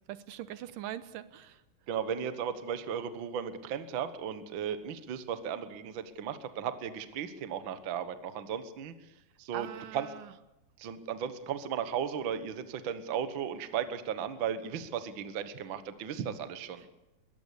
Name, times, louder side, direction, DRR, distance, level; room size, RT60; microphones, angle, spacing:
voice 1, 0.1-1.6 9.5-10.3, right 12 dB, 75° right, 13 dB, 2.5 m, -42 dB
voice 2, 1.9-8.9 9.4-10.1 10.8-16.8, right 8 dB, 60° right, 11 dB, 1.3 m, -35 dB
22.0 x 19.5 x 8.3 m, 0.95 s
omnidirectional pair, 4.0 m